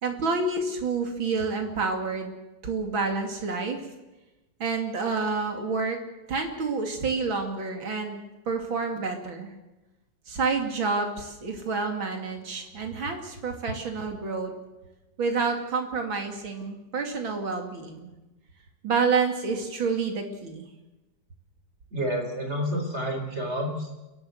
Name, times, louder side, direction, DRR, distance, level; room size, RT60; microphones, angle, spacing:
voice 1, 0.0-2.3 2.6-3.8 4.6-6.0 6.3-8.2 8.5-9.5 10.3-14.5 15.2-18.1 18.8-20.7, right 4 dB, 75° right, 4 dB, 3.4 m, -28 dB
voice 2, 21.9-24.0, equal, 30° right, 3 dB, 4.3 m, -29 dB
29.0 x 11.5 x 8.1 m, 1.1 s
omnidirectional pair, 2.2 m